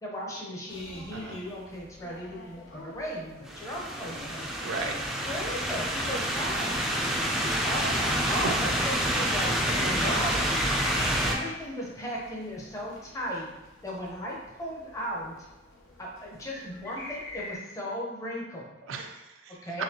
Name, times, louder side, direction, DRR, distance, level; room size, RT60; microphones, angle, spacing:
voice 1, 0.0-4.5 5.2-6.9 7.3-9.5 9.8-10.5 11.2-13.5 13.8-15.3 16.0-18.8 19.6-19.8, equal, 15° left, -3 dB, 0.8 m, -36 dB
sound 1, 0.7-17.6, left 1 dB, 75° left, 0.8 m, -45 dB
sound 2, 3.5-11.3, equal, ahead, 0.4 m, -28 dB
voice 2, 4.6-5.0 8.3-8.4 9.8-10.2 11.1-11.4 18.9-19.8, right 4 dB, 85° right, 3 dB, 0.5 m, -36 dB
4.0 x 3.1 x 2.9 m, 0.99 s
head